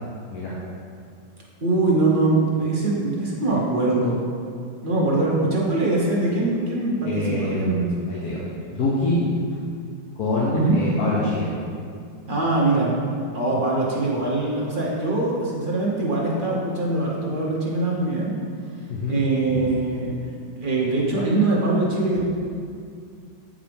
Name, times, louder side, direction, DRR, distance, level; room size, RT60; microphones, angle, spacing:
voice 1, 1.6-4.3 4.8-7.9 10.5-10.8 12.3-13.0 13.3-18.3 19.1-20.1 20.6-22.2, right 2 dB, 40° right, -4 dB, 0.9 m, -22 dB
voice 2, 7.0-8.4 8.7-9.3 10.2-11.5 18.9-19.2 19.5-19.6, left 2 dB, 65° left, -6 dB, 1.3 m, -25 dB
7.8 x 4.9 x 3.4 m, 2.3 s
omnidirectional pair, 1.8 m